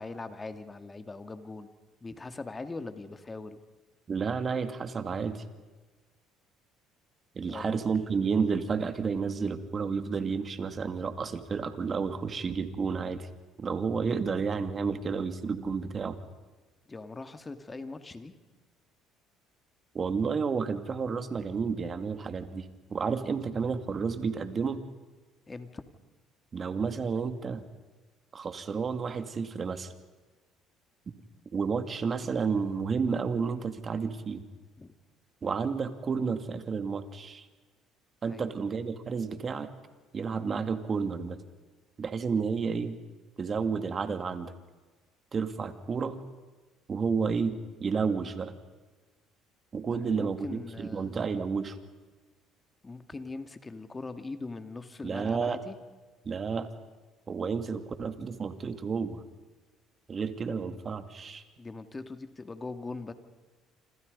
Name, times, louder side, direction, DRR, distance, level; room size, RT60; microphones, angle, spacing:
voice 1, 0.0-1.7 2.0-3.6 7.4-7.9 16.9-18.3 25.5-25.8 34.8-34.9 38.3-38.5 49.9-51.1 52.8-55.8 61.6-63.1, left 3 dB, 25° left, 9 dB, 2.4 m, -41 dB
voice 2, 4.1-5.4 7.4-13.3 13.6-16.2 19.9-24.8 26.5-27.6 28.3-29.9 31.5-34.4 35.4-37.4 38.2-39.7 40.1-41.4 42.0-43.0 43.4-44.5 45.3-46.2 46.9-48.5 49.7-51.8 55.0-55.6 56.3-56.7 57.3-59.2 60.1-61.4, right 5 dB, 40° right, 9 dB, 2.5 m, -31 dB
27.5 x 27.0 x 5.4 m, 1.3 s
supercardioid pair, 80°, 0 cm